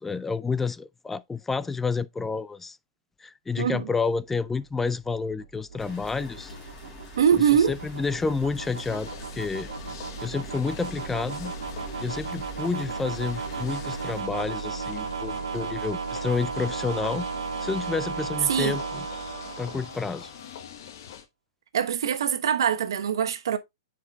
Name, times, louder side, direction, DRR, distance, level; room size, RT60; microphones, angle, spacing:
voice 1, 0.0-2.8 3.2-6.5 7.7-9.7 10.2-11.5 12.0-17.3 17.6-19.1 19.6-20.3, left 4 dB, 10° left, 0.3 m, -29 dB
voice 2, 3.6-3.9 7.2-7.7 18.5-18.8 21.7-23.6, right 8 dB, 70° right, 1.0 m, -23 dB
sound 1, 4.3-20.5, right 5 dB, 90° right, 1.6 m, -35 dB
sound 2, 5.8-14.2, left 5 dB, 25° left, 3.5 m, -45 dB
sound 3, 8.6-21.3, left 9 dB, 55° left, 1.1 m, -44 dB
9.1 x 5.0 x 2.3 m
hypercardioid pair, 130°, 2 cm